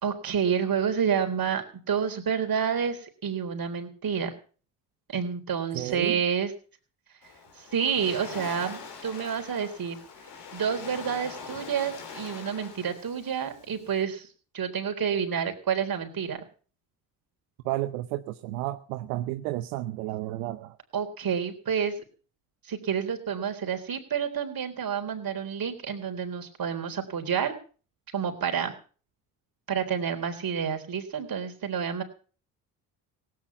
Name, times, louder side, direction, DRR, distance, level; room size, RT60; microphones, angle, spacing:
voice 1, 0.0-4.3 5.1-6.5 7.7-10.0 10.5-14.3 14.5-16.4 20.9-22.0 22.7-27.5 28.1-28.7 29.7-32.0, right 7 dB, 50° right, 5 dB, 3.8 m, -29 dB
voice 2, 5.7-6.2 17.6-20.8, right 16 dB, 85° right, 10 dB, 0.8 m, -32 dB
Waves surf, 7.2-14.0, left 5 dB, 65° left, 4.9 m, -43 dB
17.0 x 9.4 x 7.0 m, 0.41 s
hypercardioid pair, 55°, 45 cm